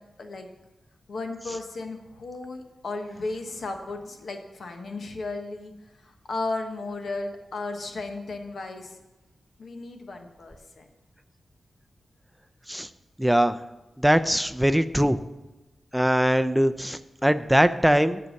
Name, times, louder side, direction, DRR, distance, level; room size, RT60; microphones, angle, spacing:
voice 1, 1.1-9.0 9.6-10.9, left 3 dB, 70° left, 5 dB, 1.2 m, -35 dB
voice 2, 13.2-13.6 14.0-15.2 15.9-18.2, equal, 5° right, 10 dB, 0.5 m, -21 dB
8.1 x 7.0 x 6.4 m, 1.1 s
wide cardioid pair, 85°, 0 cm